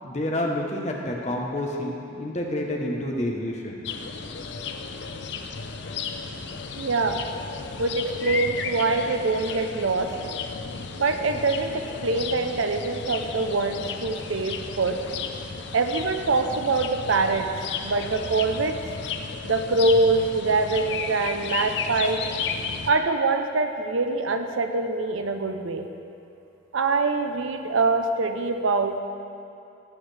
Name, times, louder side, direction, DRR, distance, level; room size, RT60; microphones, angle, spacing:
voice 1, 0.0-3.9, left 1 dB, 35° left, -1 dB, 1.0 m, -29 dB
sound 1, 3.8-22.9, left 5 dB, 60° left, 0.5 m, -34 dB
voice 2, 6.8-7.2 7.8-10.1 11.0-15.0 15.7-17.5 17.8-18.8 19.4-22.2 22.9-25.9 26.7-29.0, right 3 dB, 90° right, 7 dB, 0.7 m, -24 dB
16.5 x 6.5 x 3.4 m, 2.7 s
head